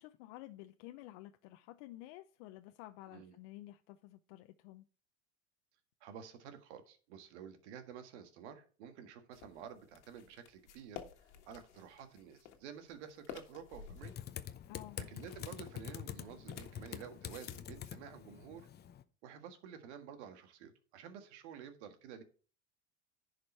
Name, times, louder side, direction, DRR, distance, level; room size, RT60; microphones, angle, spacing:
voice 1, 0.0-4.8 14.7-15.0, left 16 dB, 70° left, 0.7 m, -52 dB
voice 2, 6.0-11.0 11.4-14.1 15.0-18.7 19.2-22.2, right 8 dB, 80° right, 1.7 m, -51 dB
sound 1, 9.3-17.6, left 9 dB, 85° left, 1.6 m, -54 dB
Typing, 14.0-19.0, left 10 dB, 30° left, 0.7 m, -46 dB
10.5 x 5.1 x 4.4 m
supercardioid pair, 100°, 34 cm